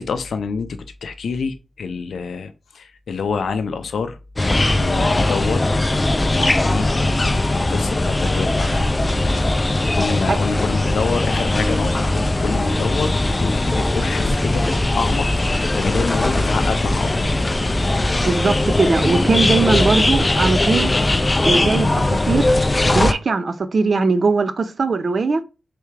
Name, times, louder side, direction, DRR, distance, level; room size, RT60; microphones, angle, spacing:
voice 1, 0.0-4.2 4.8-5.7 6.2-6.9 7.2-8.8 9.9-14.6 15.0-15.3 15.7-17.3, left 5 dB, 90° left, 0.5 m, -27 dB
sound 1, 4.4-23.1, left 2 dB, 25° left, 0.3 m, -19 dB
voice 2, 18.2-20.9 21.5-22.5 22.9-25.4, right 4 dB, 50° right, 0.4 m, -20 dB
3.4 x 3.3 x 3.3 m
wide cardioid pair, 110°, 0 cm